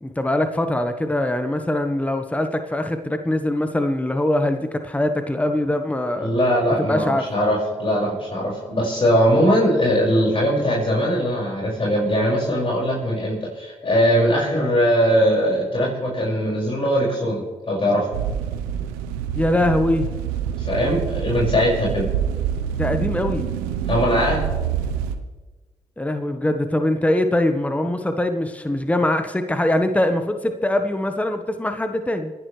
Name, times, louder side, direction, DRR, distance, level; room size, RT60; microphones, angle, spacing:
voice 1, 0.0-6.3 6.8-7.3 19.3-20.1 22.7-23.5 26.0-32.3, left 1 dB, 10° left, 7 dB, 1.3 m, -22 dB
voice 2, 6.2-18.1 20.6-22.1 23.9-24.4, equal, 40° left, -5 dB, 6.0 m, -20 dB
sound 1, 18.1-25.2, right 9 dB, 85° right, 0.9 m, -26 dB
27.5 x 11.0 x 3.4 m, 1.3 s
hypercardioid pair, 45°, 15 cm